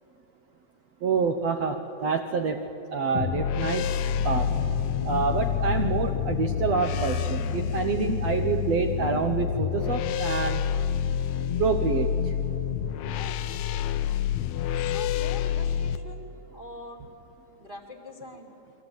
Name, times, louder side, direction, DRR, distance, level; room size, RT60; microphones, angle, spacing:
voice 1, 1.0-3.9 4.2-4.6 5.0-10.6 11.6-12.3, right 5 dB, 65° right, 5 dB, 1.7 m, -27 dB
sound 1, 3.1-16.0, left 8 dB, 75° left, 1.6 m, -28 dB
sound 2, 3.1-12.2 12.6-12.7, left 7 dB, 60° left, 2.2 m, -37 dB
voice 2, 13.1-14.0 14.7-17.0 17.6-18.5, left 2 dB, 20° right, 1 dB, 1.5 m, -44 dB
28.5 x 22.5 x 9.1 m, 2.9 s
omnidirectional pair, 4.0 m